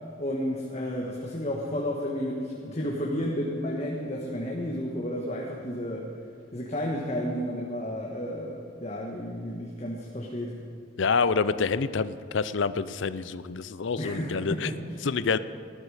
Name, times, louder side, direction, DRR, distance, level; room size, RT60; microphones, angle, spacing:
voice 1, 0.2-6.1 6.5-10.5 14.0-15.0, equal, 35° left, -1 dB, 1.4 m, -32 dB
voice 2, 11.0-14.7 15.0-15.4, left 5 dB, 70° left, 14 dB, 0.5 m, -27 dB
18.5 x 12.0 x 4.9 m, 2.3 s
head